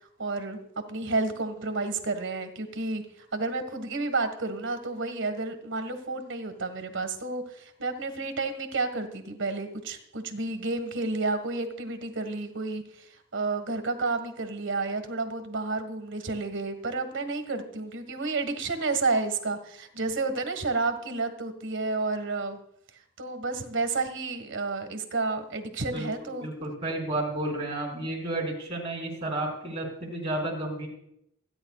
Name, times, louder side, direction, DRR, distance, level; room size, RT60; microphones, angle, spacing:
voice 1, 0.2-22.6 23.2-26.5, right 3 dB, 65° right, 7 dB, 1.7 m, -31 dB
voice 2, 25.9-30.9, right 1 dB, 30° right, 0 dB, 4.5 m, -32 dB
28.0 x 9.9 x 2.4 m, 0.76 s
head